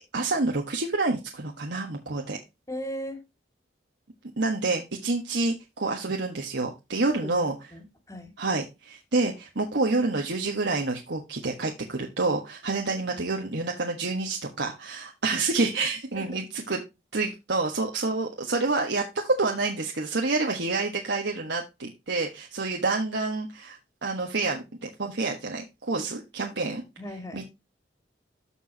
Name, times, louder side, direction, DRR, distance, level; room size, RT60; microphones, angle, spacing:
voice 1, 0.1-2.4 4.4-7.5 8.4-16.8 17.1-26.8 27.3-27.5, right 3 dB, 85° right, 1 dB, 1.4 m, -28 dB
voice 2, 2.7-3.2 7.1-7.4 7.7-8.3 16.1-16.4 27.0-27.4, equal, 20° left, 6 dB, 2.2 m, -37 dB
14.0 x 4.7 x 2.8 m, 0.24 s
head